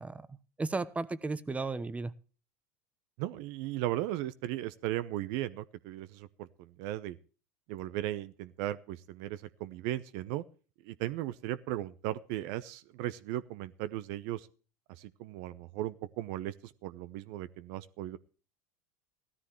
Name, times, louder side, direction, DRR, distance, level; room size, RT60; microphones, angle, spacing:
voice 1, 0.0-2.1, right 3 dB, 15° right, 17 dB, 1.0 m, -35 dB
voice 2, 3.2-7.2 7.7-10.4 10.8-14.5 15.0-18.2, right 14 dB, 65° right, 14 dB, 0.8 m, -37 dB
17.0 x 13.5 x 3.1 m, 0.38 s
hypercardioid pair, 85°, 9 cm